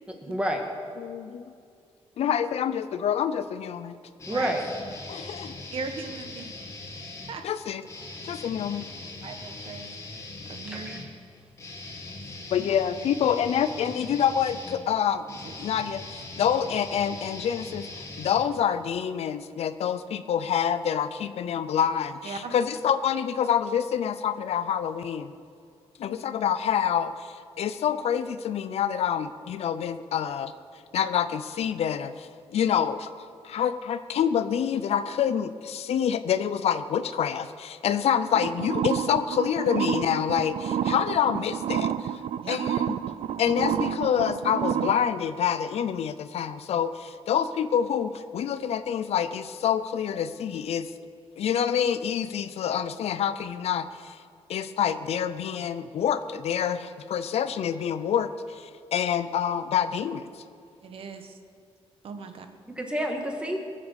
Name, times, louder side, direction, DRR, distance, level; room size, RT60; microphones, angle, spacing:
voice 1, 0.2-0.6 4.3-4.6 10.7-11.0 62.6-63.6, right 1 dB, 10° right, 2 dB, 1.8 m, -29 dB
voice 2, 1.0-1.5 2.2-4.0 5.1-5.5 7.4-7.8 8.2-8.9 12.5-15.2 15.6-25.3 26.0-30.5 30.9-43.0 43.4-50.9 51.4-54.2 54.5-60.4, left 8 dB, 75° left, 12 dB, 0.6 m, -27 dB
sound 1, 4.2-7.4 7.8-19.0, left 2 dB, 25° left, 2.2 m, -41 dB
voice 3, 5.7-6.5 7.3-7.4 9.2-9.9 10.5-11.0 12.2-12.3 15.3-15.5 22.2-22.5 42.4-42.6 60.8-61.4 62.0-62.5, right 5 dB, 60° right, 7 dB, 1.2 m, -38 dB
sound 2, 38.3-44.9, right 10 dB, 90° right, 0.5 m, -29 dB
21.5 x 7.7 x 6.4 m, 2.3 s
wide cardioid pair, 160°, 11 cm